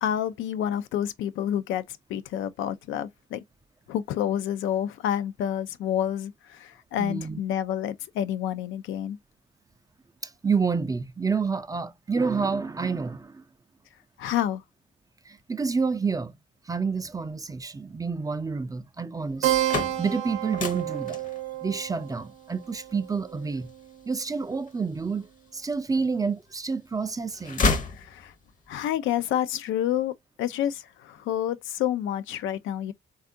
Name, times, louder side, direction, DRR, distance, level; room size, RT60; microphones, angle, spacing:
voice 1, 0.0-1.8 2.1-3.4 3.9-9.2 14.2-14.6 27.9-28.3 28.7-30.1 30.4-32.9, left 10 dB, 80° left, 0.4 m, -28 dB
voice 2, 7.0-7.4 10.2-13.4 15.3-16.3 16.7-19.5 20.0-21.2 21.6-23.7 24.1-25.3 25.5-27.6, right 5 dB, 20° right, 0.3 m, -29 dB
sound 1, 19.4-25.3 25.9-26.7 27.0-28.6, left 3 dB, 40° left, 0.7 m, -32 dB
Keyboard (musical), 19.4-24.4, right 13 dB, 90° right, 0.6 m, -31 dB
3.5 x 2.3 x 2.5 m
cardioid pair, 90°, 20 cm